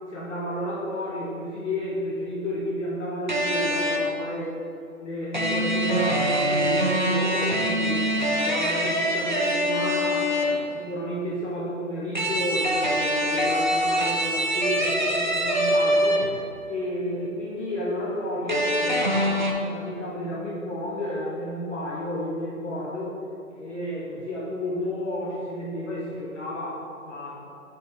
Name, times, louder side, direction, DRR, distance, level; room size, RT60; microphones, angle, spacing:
voice 1, 0.1-4.5 5.0-16.3 16.7-23.2 23.5-27.4, left 1 dB, 55° left, -5 dB, 1.1 m, -31 dB
sound 1, 3.3-4.2 5.3-10.7 12.1-16.5 18.5-19.5, equal, 35° right, 0.4 m, -24 dB
6.4 x 3.6 x 4.3 m, 2.6 s
figure-of-eight pair, 160°, 42 cm